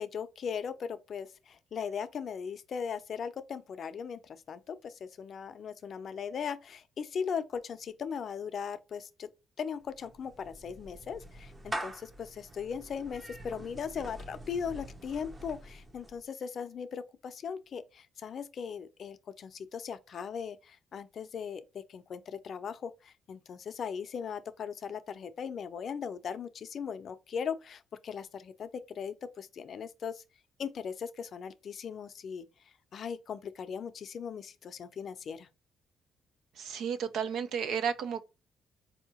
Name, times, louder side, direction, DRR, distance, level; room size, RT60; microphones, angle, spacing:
voice 1, 0.0-9.3 9.6-30.2 30.6-32.5 32.9-35.5, left 7 dB, 55° left, 0.5 m, -38 dB
Clapping / Meow, 9.8-16.3, right 1 dB, 20° right, 0.7 m, -44 dB
voice 2, 36.6-38.2, right 7 dB, 75° right, 0.4 m, -32 dB
4.3 x 2.7 x 2.8 m
cardioid pair, 90°, 0 cm